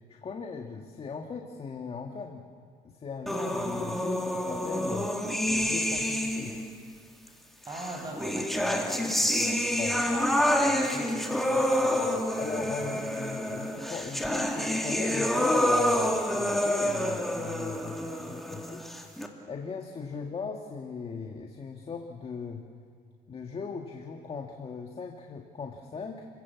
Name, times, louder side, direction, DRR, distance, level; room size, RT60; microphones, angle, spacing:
voice 1, 0.1-2.5 2.8-6.7 9.8-10.4 12.4-19.0 19.5-22.6 23.3-26.3, left 5 dB, 35° left, 2 dB, 1.8 m, -38 dB
sound 1, 3.3-6.7 7.7-19.3, equal, ahead, 2.4 m, -28 dB
voice 2, 7.7-10.3 10.6-13.0, right 2 dB, 25° right, 1 dB, 6.8 m, -41 dB
30.0 x 16.5 x 7.3 m, 2.1 s
cardioid pair, 110°, 17 cm